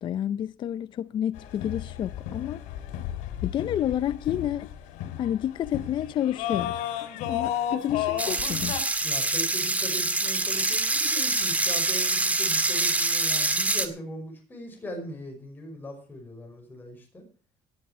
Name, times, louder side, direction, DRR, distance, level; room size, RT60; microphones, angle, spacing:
voice 1, 0.0-2.6 3.4-4.7 5.2-6.9 7.3-8.8, left 10 dB, 40° left, 0.5 m, -29 dB
sound 1, 1.4-8.8, left 11 dB, 85° left, 3.0 m, -33 dB
sound 2, 8.2-13.9, right 2 dB, 10° right, 1.9 m, -25 dB
voice 2, 9.0-17.3, equal, 15° left, 5.6 m, -39 dB
18.5 x 11.0 x 4.3 m
cardioid pair, 150°, 12 cm